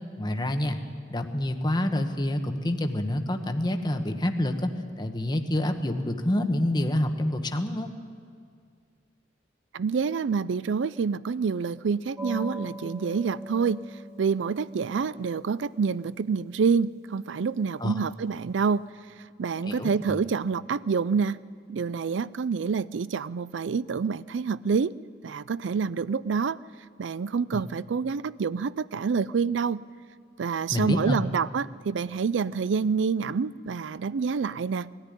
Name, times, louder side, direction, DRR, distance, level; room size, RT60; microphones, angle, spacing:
voice 1, 0.2-0.8 1.1-4.7 5.0-7.9 17.8-17.9 19.6-20.2 30.7-31.3, left 1 dB, 25° left, 6 dB, 1.1 m, -27 dB
voice 2, 9.7-18.9 19.4-21.4 21.7-24.9 25.2-26.6 27.0-29.8 30.4-34.9, right 5 dB, 75° right, 18 dB, 0.4 m, -27 dB
sound 1, 12.2-18.4, equal, 15° right, 2.0 m, -42 dB
20.0 x 14.0 x 9.9 m, 2.1 s
head